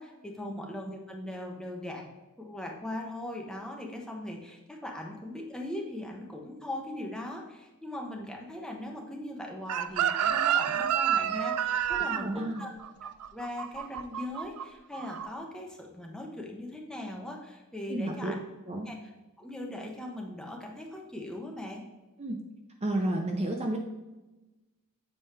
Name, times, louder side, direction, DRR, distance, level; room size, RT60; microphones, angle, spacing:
voice 1, 0.0-2.0 2.4-12.7 13.3-18.4 18.9-19.0 19.4-21.8, left 1 dB, 5° left, -1 dB, 0.8 m, -39 dB
Chicken rooster, 9.7-14.6 14.9-15.3, right 9 dB, 90° right, 0.4 m, -29 dB
voice 2, 12.1-12.6 17.9-18.3 18.7-18.9 22.2-22.4 22.8-23.8, right 1 dB, 30° right, 2 dB, 0.6 m, -31 dB
7.4 x 4.4 x 3.3 m, 1.1 s
head